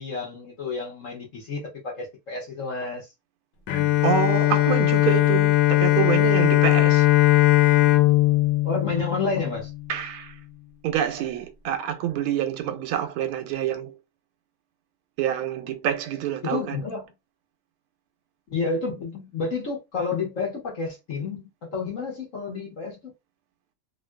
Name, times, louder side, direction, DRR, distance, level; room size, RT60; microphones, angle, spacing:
voice 1, 0.0-3.1 8.6-9.7 16.4-17.0 18.5-23.0, left 4 dB, 45° left, 1.1 m, -30 dB
Bowed string instrument, 3.7-9.9, left 15 dB, 70° left, 1.3 m, -19 dB
voice 2, 4.0-7.1 9.9-10.4 10.8-14.0 15.2-16.8, right 10 dB, 85° right, 1.5 m, -27 dB
3.5 x 2.5 x 2.2 m
omnidirectional pair, 2.4 m